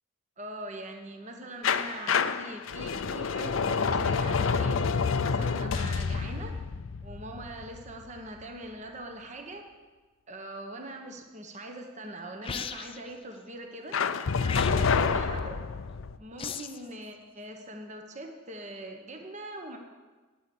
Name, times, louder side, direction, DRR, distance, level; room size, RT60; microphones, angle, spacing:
voice 1, 0.4-6.6 7.0-9.7 10.3-14.0 14.6-15.6 16.2-19.8, right 1 dB, 35° right, 3 dB, 1.2 m, -42 dB
sound 1, 1.6-8.4 13.9-16.2, left 5 dB, 85° left, 0.6 m, -28 dB
sound 2, 12.4-13.1 14.4-15.1 16.4-16.9, left 7 dB, 25° left, 0.4 m, -37 dB
9.5 x 8.8 x 8.6 m, 1.3 s
head